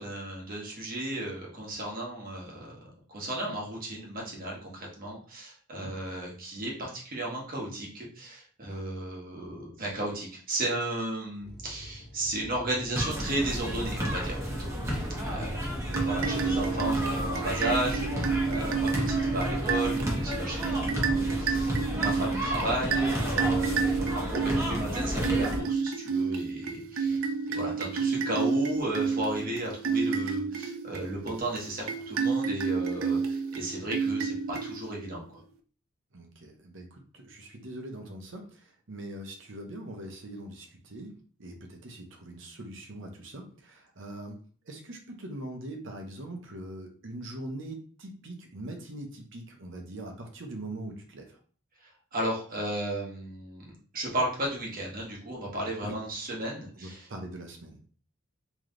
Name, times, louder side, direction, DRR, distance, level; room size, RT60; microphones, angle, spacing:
voice 1, 0.0-2.7 3.1-14.7 15.2-15.6 16.1-27.2 27.5-35.4 51.8-57.1, right 1 dB, 45° right, -2 dB, 1.3 m, -34 dB
sound 1, 11.4-17.9, left 1 dB, 50° left, 0.6 m, -47 dB
sound 2, 12.9-25.6, equal, 15° right, 1.0 m, -31 dB
voice 2, 15.4-15.7 27.0-27.3 36.1-41.1 41.4-44.4 44.7-51.4 55.8-56.0 56.8-57.9, right 1 dB, 65° right, 3 dB, 0.9 m, -42 dB
sound 3, 15.9-35.1, right 5 dB, 90° right, 0.5 m, -30 dB
3.3 x 3.0 x 3.8 m, 0.43 s
head